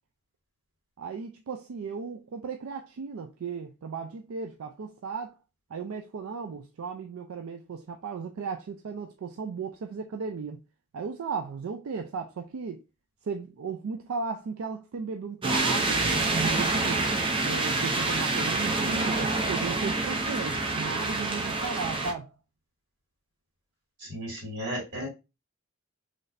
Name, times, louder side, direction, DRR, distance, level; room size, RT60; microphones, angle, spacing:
voice 1, 1.0-5.4 5.7-10.6 10.9-12.8 13.2-17.0 17.4-22.3, right 5 dB, 75° right, 0.4 m, -35 dB
sound 1, 15.4-22.1, right 2 dB, 25° right, 0.5 m, -27 dB
voice 2, 24.0-25.1, equal, 55° right, 2.3 m, -34 dB
4.0 x 3.2 x 2.5 m
head